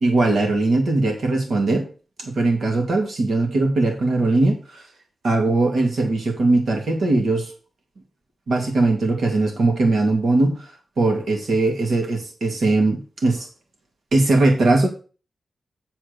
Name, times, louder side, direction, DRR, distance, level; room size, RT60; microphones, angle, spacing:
voice 1, 0.0-1.8 2.2-4.8 5.2-7.5 8.5-10.6 11.0-13.5 14.1-14.9, right 2 dB, 75° right, 2 dB, 2.4 m, -20 dB
7.7 x 4.4 x 6.7 m, 0.36 s
cardioid pair, 50°, 0 cm